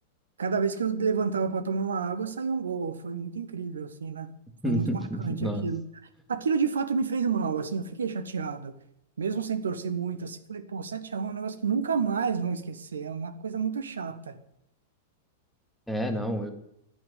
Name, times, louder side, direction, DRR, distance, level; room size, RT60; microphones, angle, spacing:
voice 1, 0.4-4.3 4.6-5.8 6.3-8.7 9.2-14.4, right 5 dB, 70° right, 1.3 m, -30 dB
voice 2, 4.6-5.7 15.9-16.5, equal, 5° left, 2.3 m, -29 dB
11.5 x 9.0 x 9.9 m
figure-of-eight pair, 95°, 0 cm